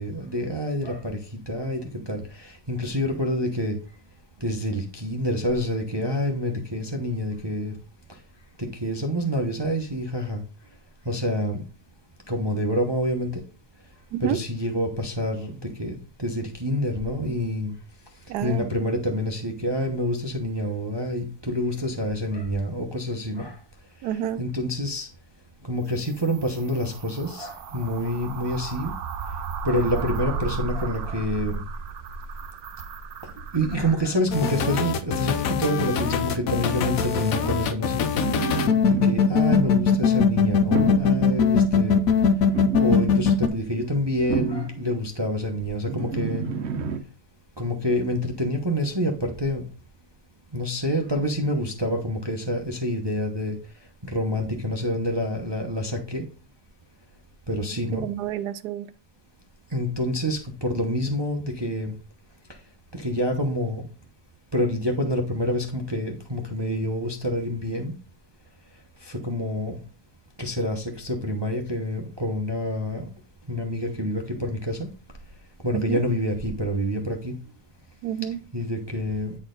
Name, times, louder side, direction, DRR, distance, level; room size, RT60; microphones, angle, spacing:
voice 1, 0.0-3.8 4.4-7.7 8.6-10.4 11.0-11.6 12.3-13.4 14.2-17.7 18.4-23.6 24.4-25.1 25.7-28.9 29.6-31.6 33.5-38.2 38.9-42.0 42.7-46.4 47.6-49.6 50.5-53.6 54.0-56.2 57.5-58.0 59.7-61.9 62.9-63.9 64.5-67.9 69.0-69.8 70.4-73.0 73.5-74.9 75.6-77.3 78.5-79.4, equal, 20° right, 0.8 m, -27 dB
voice 2, 18.3-18.7 24.0-24.4 57.9-58.9 75.7-76.0 78.0-78.4, right 11 dB, 90° right, 1.2 m, -29 dB
sound 1, 25.9-34.0, right 4 dB, 75° right, 1.2 m, -34 dB
sound 2, 34.3-43.5, left 6 dB, 65° left, 1.1 m, -21 dB
sound 3, 38.2-40.0 40.7-41.2 42.2-43.2 43.9-44.9 45.8-47.0, right 6 dB, 50° right, 0.9 m, -30 dB
9.7 x 4.4 x 3.8 m
omnidirectional pair, 1.7 m